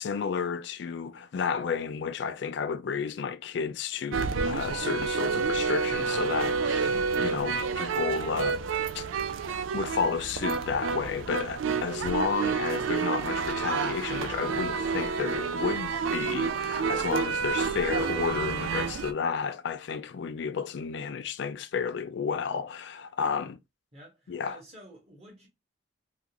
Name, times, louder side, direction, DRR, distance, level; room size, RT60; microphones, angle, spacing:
voice 1, 0.0-8.6 8.9-9.1 9.7-23.6 24.3-24.6, left 6 dB, 60° left, 0.3 m, -32 dB
sound 1, 4.1-19.1, right 5 dB, 75° right, 0.4 m, -29 dB
voice 2, 23.9-25.5, right 1 dB, 30° right, 1.3 m, -50 dB
3.6 x 2.4 x 2.9 m
head